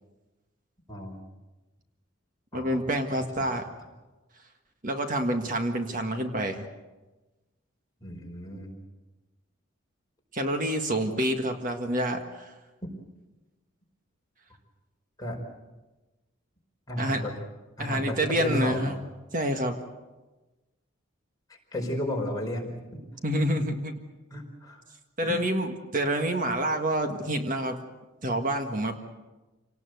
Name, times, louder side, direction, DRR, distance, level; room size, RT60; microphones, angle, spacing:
voice 1, 0.9-1.2 2.5-2.8 3.4-3.5 8.0-8.7 15.2-15.4 16.9-17.3 17.8-19.0 21.7-23.0 24.3-24.8 25.2-25.5, left 1 dB, 20° left, -1 dB, 4.7 m, -33 dB
voice 2, 2.5-3.7 4.8-6.7 10.3-12.5 17.0-17.2 17.8-19.0 19.3-19.8 23.2-23.9 25.2-27.8 28.2-29.0, right 1 dB, 40° right, 5 dB, 1.7 m, -28 dB
27.0 x 19.0 x 8.0 m, 1.1 s
head